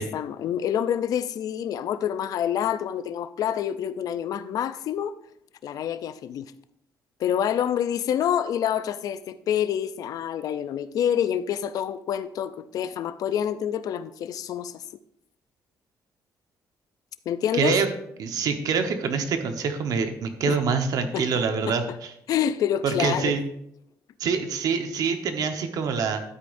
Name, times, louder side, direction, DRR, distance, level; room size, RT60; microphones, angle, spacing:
voice 1, 0.0-5.1 5.6-6.5 7.2-14.8 17.3-17.8 20.5-20.6 21.1-21.3 21.7-21.8 22.3-23.4, left 9 dB, 65° left, 0.5 m, -27 dB
voice 2, 17.5-17.9 18.2-22.1 22.8-23.4 24.2-26.2, right 5 dB, 65° right, 1.2 m, -25 dB
12.5 x 8.4 x 2.6 m
cardioid pair, 135°, 7 cm